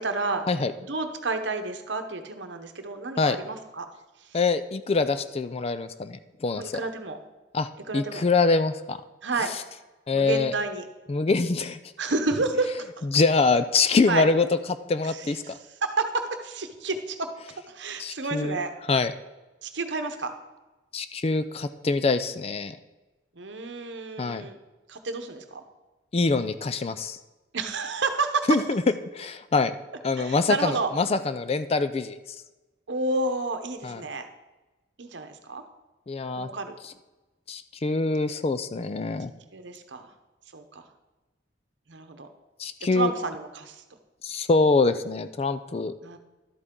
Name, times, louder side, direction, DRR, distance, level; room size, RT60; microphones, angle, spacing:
voice 1, 0.0-0.4 0.8-3.9 4.2-4.3 6.6-7.2 7.9-8.2 9.2-9.5 10.1-10.8 12.0-12.9 14.1-14.3 15.0-15.5 15.8-17.3 17.7-18.7 19.6-20.3 23.3-24.6 24.9-25.6 27.5-28.5 30.2-30.9 32.9-34.3 35.0-35.6 36.4-36.8 39.5-40.1 40.5-40.8 41.9-42.3 42.9-43.8 46.0-46.2, right 3 dB, 70° right, 7 dB, 0.9 m, -30 dB
voice 2, 4.3-6.8 7.5-9.0 10.1-10.5 11.1-11.8 13.1-14.5 14.9-15.6 18.0-18.6 18.9-19.1 20.9-22.8 24.2-24.5 26.1-27.2 28.5-28.8 29.1-29.7 30.0-32.2 33.8-34.0 36.1-36.5 37.5-39.3 42.6-43.1 44.2-45.9, left 3 dB, 30° left, 12 dB, 0.4 m, -24 dB
12.0 x 7.9 x 3.8 m, 1.1 s
head